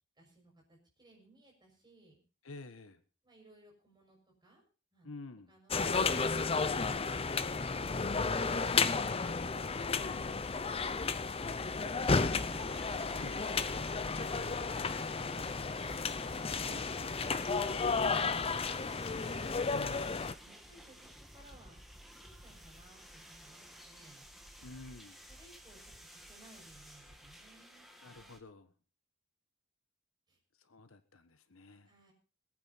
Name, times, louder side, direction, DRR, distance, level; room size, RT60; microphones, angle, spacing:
voice 1, 0.2-2.2 3.2-4.6 4.9-5.1 20.4-21.8 22.1-24.7 25.3-27.9 30.3-30.4 31.8-32.1, right 2 dB, 20° right, 0 dB, 6.4 m, -61 dB
voice 2, 2.4-3.0 5.0-5.5 9.9-10.3 13.2-13.4 16.5-16.9 17.7-17.9 19.7-20.1 24.6-25.2 28.0-28.7 30.6-31.9, left 3 dB, 70° left, 10 dB, 1.3 m, -50 dB
sound 1, 5.7-20.3, left 4 dB, 25° left, 0.6 m, -33 dB
sound 2, 12.5-28.4, equal, ahead, 1.6 m, -54 dB
22.0 x 9.1 x 4.2 m, 0.36 s
head